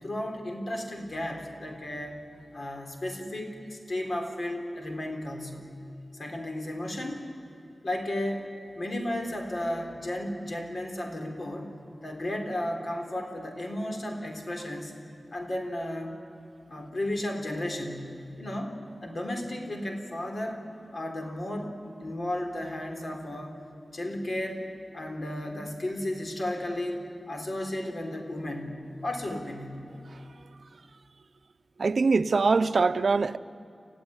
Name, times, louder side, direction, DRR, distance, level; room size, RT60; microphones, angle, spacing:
voice 1, 0.0-2.2 2.5-5.7 6.1-7.3 7.8-8.5 8.8-11.7 12.0-15.0 15.3-16.2 16.7-20.6 20.9-21.7 22.0-23.6 23.9-24.7 24.9-29.9, left 1 dB, 55° left, 3.5 m, -34 dB
voice 2, 31.8-33.4, right 4 dB, 70° right, 0.6 m, -23 dB
29.5 x 15.0 x 9.8 m
wide cardioid pair, 95°, 0 cm